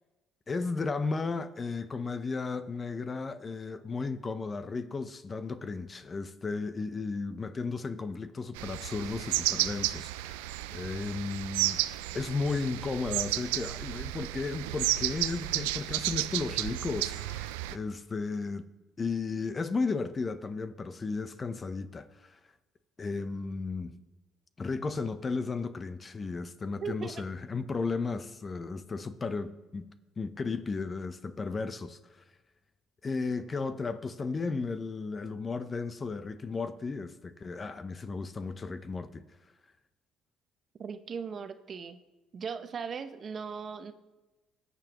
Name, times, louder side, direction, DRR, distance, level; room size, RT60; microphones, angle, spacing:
voice 1, 0.5-11.8 12.1-18.6 19.0-22.4 23.0-24.0 24.6-29.9 30.2-32.0 33.0-39.2, left 4 dB, 35° left, 0.7 m, -34 dB
sound 1, 8.6-17.8, right 16 dB, 85° right, 0.3 m, -32 dB
voice 2, 26.8-27.1 40.8-42.0 42.3-43.9, right 6 dB, 45° right, 0.8 m, -38 dB
20.0 x 6.9 x 3.0 m
hypercardioid pair, 60°, 0 cm